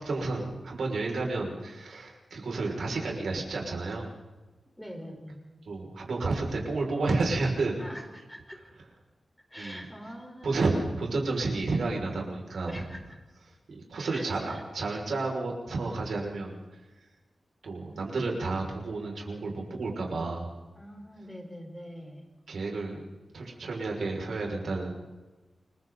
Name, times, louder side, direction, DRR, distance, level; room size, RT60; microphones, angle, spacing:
voice 1, 0.0-4.1 5.7-7.8 9.5-9.9 10.4-12.8 13.7-16.8 17.6-20.5 22.5-23.1 23.3-25.0, right 3 dB, 90° right, 0 dB, 6.0 m, -31 dB
voice 2, 4.8-5.4 7.8-8.7 9.5-10.7 12.7-13.0 14.1-14.6 17.9-18.0 20.7-22.2, equal, 5° left, 1 dB, 4.4 m, -44 dB
29.0 x 22.0 x 4.1 m, 1.2 s
wide cardioid pair, 155°, 0 cm